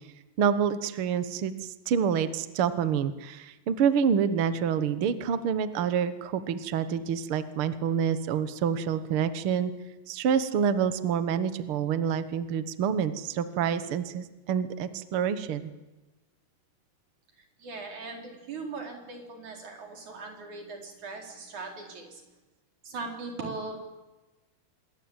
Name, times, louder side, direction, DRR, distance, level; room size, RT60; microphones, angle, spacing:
voice 1, 0.4-1.5 1.9-9.7 10.1-15.6, right 7 dB, 80° right, 11 dB, 1.2 m, -27 dB
voice 2, 17.6-22.2 22.9-23.8, right 3 dB, 50° right, 2 dB, 5.6 m, -39 dB
27.0 x 22.0 x 8.9 m, 1.1 s
omnidirectional pair, 4.4 m